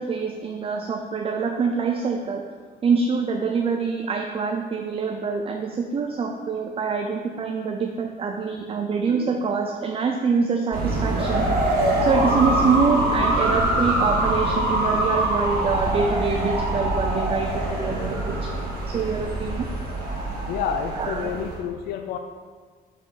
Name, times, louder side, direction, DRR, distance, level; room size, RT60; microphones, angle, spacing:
voice 1, 0.0-2.5 2.8-11.5 12.0-17.5 17.8-18.5 18.9-19.7 20.9-21.3, right 5 dB, 35° right, 4 dB, 0.5 m, -25 dB
sound 1, 10.7-21.6, right 1 dB, 65° right, 1.9 m, -24 dB
voice 2, 20.5-22.2, left 7 dB, 70° left, 5 dB, 0.5 m, -29 dB
6.5 x 5.1 x 4.0 m, 1.5 s
cardioid pair, 110°, 17 cm